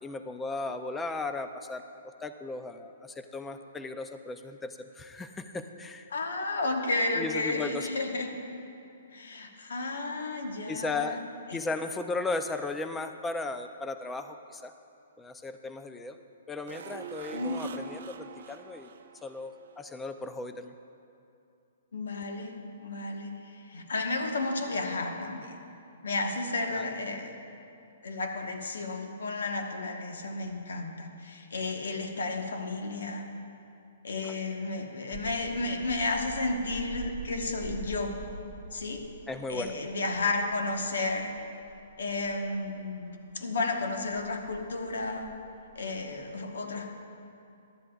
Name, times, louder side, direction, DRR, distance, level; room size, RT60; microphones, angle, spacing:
voice 1, 0.0-6.1 7.2-7.9 10.7-11.2 11.5-14.7 15.2-16.2 16.5-18.9 19.2-20.7 26.7-26.9 39.3-39.7, left 3 dB, 10° left, 8 dB, 0.4 m, -36 dB
voice 2, 6.1-8.3 9.1-11.2 11.5-11.6 17.3-17.7 21.9-22.5 22.8-25.5 26.0-27.3 28.0-33.3 34.0-38.2 38.7-39.0 39.5-41.3 42.0-45.3 45.7-46.9, left 2 dB, 90° left, 3 dB, 1.1 m, -32 dB
sound 1, 16.7-19.8 20.1-20.2, right 8 dB, 60° right, 0.6 m, -45 dB
sound 2, 35.1-43.1 43.8-46.2, right 6 dB, 30° right, 1.0 m, -46 dB
15.5 x 11.0 x 2.4 m, 2.6 s
hypercardioid pair, 165°, 0 cm